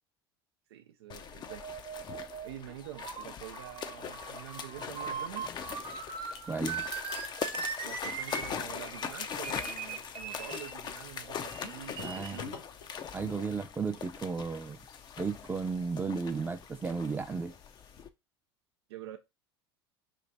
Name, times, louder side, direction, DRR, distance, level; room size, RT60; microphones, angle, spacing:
voice 1, 0.7-2.0 2.4-5.5 7.8-12.6 18.9-19.2, right 12 dB, 85° right, 0.4 m, -46 dB
sound 1, 1.1-18.1, left 7 dB, 35° left, 0.5 m, -41 dB
sound 2, 1.5-10.7 11.4-12.4, right 6 dB, 40° right, 0.9 m, -40 dB
sound 3, 5.6-18.0, left 6 dB, 80° left, 0.9 m, -56 dB
voice 2, 6.5-6.8 12.0-12.6 13.1-14.8 15.2-17.5, right 4 dB, 15° right, 0.5 m, -34 dB
3.3 x 2.5 x 4.0 m
hypercardioid pair, 90°, 13 cm